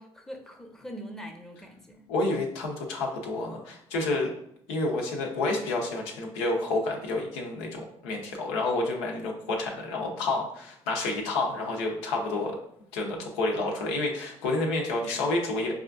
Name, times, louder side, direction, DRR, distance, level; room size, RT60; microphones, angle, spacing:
voice 1, 0.0-2.1, equal, 5° left, 2 dB, 0.6 m, -42 dB
voice 2, 2.1-4.3 4.7-12.6 12.9-15.7, left 2 dB, 90° left, 0 dB, 0.6 m, -29 dB
4.8 x 2.3 x 2.4 m, 0.69 s
hypercardioid pair, 55°, 13 cm